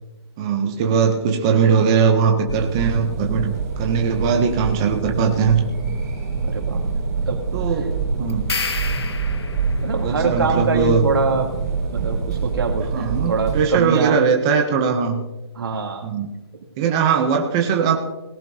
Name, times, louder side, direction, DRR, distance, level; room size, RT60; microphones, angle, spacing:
voice 1, 0.4-5.6 7.5-8.4 10.0-11.1 12.9-15.2 16.0-16.3 16.8-18.0, right 6 dB, 10° right, 3 dB, 0.5 m, -20 dB
sound 1, 2.5-13.6, right 4 dB, 30° right, 5.2 m, -25 dB
voice 2, 6.4-6.8 7.3-7.4 7.7-7.8 9.8-11.5 11.9-14.2 15.6-16.1, right 4 dB, 60° right, 2 dB, 2.4 m, -24 dB
sound 2, 8.3-9.9, left 5 dB, 70° left, 1.4 m, -28 dB
18.0 x 16.5 x 2.7 m, 1.1 s
hypercardioid pair, 175°, 14 cm